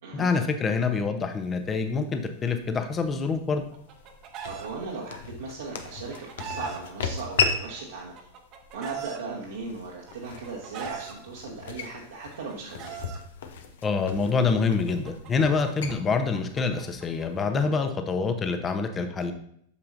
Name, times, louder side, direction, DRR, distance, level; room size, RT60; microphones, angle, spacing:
voice 1, 0.1-3.6 13.8-19.3, left 4 dB, 20° left, 7 dB, 0.9 m, -26 dB
sound 1, 1.3-17.4, left 5 dB, 60° left, 0.8 m, -36 dB
Chicken rooster, 3.5-4.7 5.8-6.8 7.8-9.2 10.1-11.1 12.1-13.2 14.3-17.6, right 8 dB, 40° right, 1.0 m, -40 dB
voice 2, 4.4-8.2 8.7-12.9, right 4 dB, 65° right, -4 dB, 1.4 m, -37 dB
8.3 x 7.0 x 2.6 m, 0.67 s
figure-of-eight pair, 90°, 0 cm